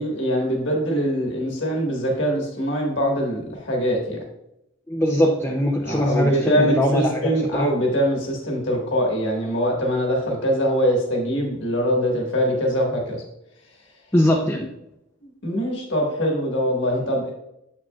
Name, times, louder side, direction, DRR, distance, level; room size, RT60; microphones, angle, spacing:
voice 1, 0.0-4.2 5.8-13.2 15.2-17.3, equal, 60° left, -1 dB, 1.5 m, -23 dB
voice 2, 4.9-7.7 14.1-14.7, equal, 10° left, 0 dB, 0.5 m, -21 dB
7.9 x 6.0 x 2.3 m, 0.84 s
head